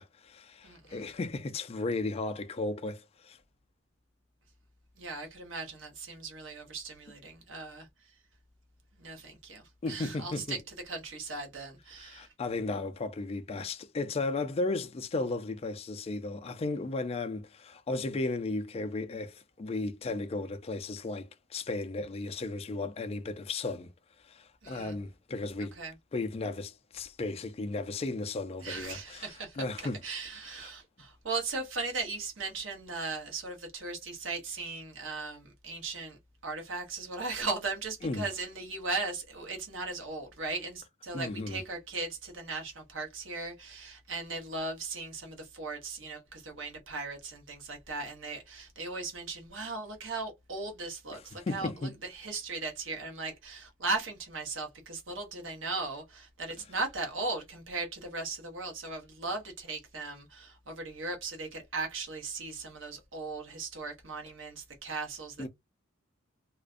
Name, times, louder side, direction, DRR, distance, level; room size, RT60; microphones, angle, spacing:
voice 1, 0.0-3.4 9.8-10.6 12.0-23.9 24.2-25.8 26.1-29.3 29.6-30.0 30.6-30.7 38.0-38.3 41.1-41.6 51.1-51.9 65.4-65.5, left 3 dB, 30° left, 0.3 m, -35 dB
voice 2, 0.6-1.1 5.0-7.9 8.9-12.3 24.6-25.0 25.8-25.9 28.6-29.6 30.0-65.5, right 3 dB, 65° right, 0.9 m, -38 dB
2.4 x 2.1 x 2.4 m
head